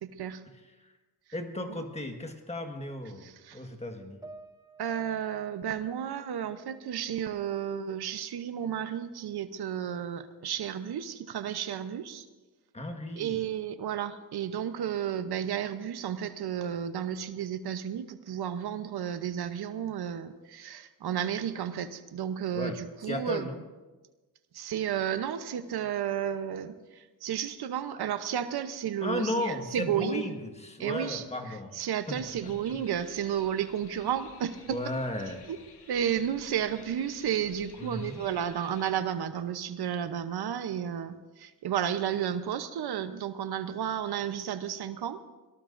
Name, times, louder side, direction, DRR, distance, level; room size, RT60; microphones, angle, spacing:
voice 1, 0.0-0.4 1.7-1.8 3.2-3.6 4.8-12.3 13.2-23.5 24.5-30.2 30.8-31.2 31.7-34.8 35.9-45.2, right 9 dB, 80° right, 11 dB, 0.9 m, -32 dB
voice 2, 1.3-4.2 12.7-13.4 22.5-22.8 23.1-23.6 29.0-32.8 34.7-35.4 37.8-38.3, left 1 dB, 15° left, 5 dB, 1.6 m, -35 dB
sound 1, 4.2-7.6 8.0-9.0, right 2 dB, 10° right, 0.6 m, -54 dB
sound 2, 32.0-38.9, left 5 dB, 85° left, 1.9 m, -54 dB
24.5 x 18.5 x 2.6 m, 1.2 s
wide cardioid pair, 130°, 38 cm